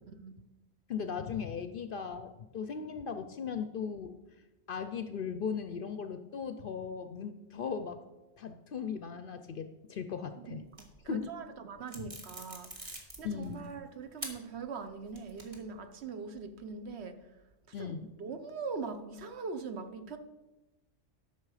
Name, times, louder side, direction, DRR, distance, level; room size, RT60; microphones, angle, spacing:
voice 1, 0.9-4.1 4.7-8.0 8.4-10.6 11.1-11.3 13.2-13.7 17.7-18.1, left 6 dB, 60° left, 0.6 m, -38 dB
voice 2, 10.3-17.3 17.7-17.9 18.2-20.2, right 5 dB, 65° right, 1.0 m, -42 dB
sound 1, 10.6-11.2 11.9-13.7 14.2-14.3 14.8-15.8, right 1 dB, 30° right, 1.5 m, -45 dB
12.5 x 6.0 x 4.8 m
omnidirectional pair, 1.3 m